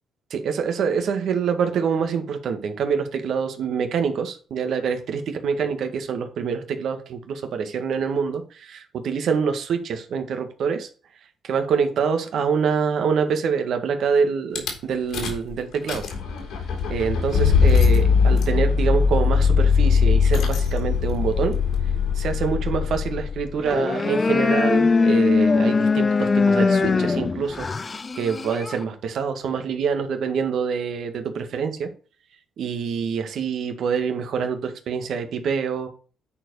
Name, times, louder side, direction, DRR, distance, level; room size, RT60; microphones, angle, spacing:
voice 1, 0.3-10.9 11.4-16.0 16.9-21.5 22.1-27.7 28.2-31.9 32.6-35.9, right 6 dB, 70° right, 6 dB, 1.8 m, -25 dB
Rattle / Car / Engine starting, 14.6-14.7 15.1-15.5 15.7-23.5, left 5 dB, 85° left, 3.8 m, -20 dB
sound 1, 23.6-28.8, left 4 dB, 30° left, 0.7 m, -21 dB
9.8 x 4.7 x 4.8 m, 0.39 s
cardioid pair, 90°, 0 cm